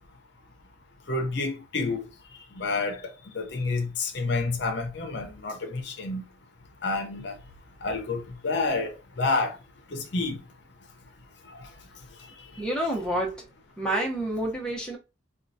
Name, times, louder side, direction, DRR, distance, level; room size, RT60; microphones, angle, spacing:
voice 1, 1.1-2.0 2.6-3.0 3.3-6.2 6.8-7.3 7.8-9.6 9.9-10.4, left 3 dB, 60° left, 0.7 m, -29 dB
voice 2, 12.6-13.4 13.8-15.0, right 1 dB, 5° left, 0.8 m, -28 dB
4.4 x 2.3 x 2.6 m
head